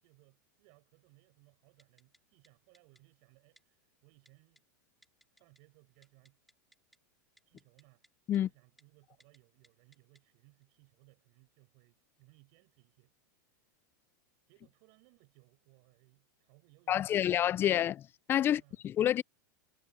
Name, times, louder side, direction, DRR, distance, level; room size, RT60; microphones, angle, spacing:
voice 1, 0.0-4.6 5.3-6.4 7.4-8.0 8.3-13.1 14.5-17.7 18.4-18.8, right 34 dB, 50° right, 7.3 m, -65 dB
Typing, 1.8-2.2 2.4-2.5 2.7-3.0 3.6-3.7 4.3-4.6 5.0-5.6 5.9-7.0 7.4-8.1 8.3-8.4 8.8-8.9 9.2-9.4 9.6-10.2 10.6-10.7, equal, ahead, 2.4 m, -65 dB
voice 2, 16.9-18.0 18.3-19.2, left 11 dB, 20° left, 0.3 m, -28 dB
supercardioid pair, 145°, 10 cm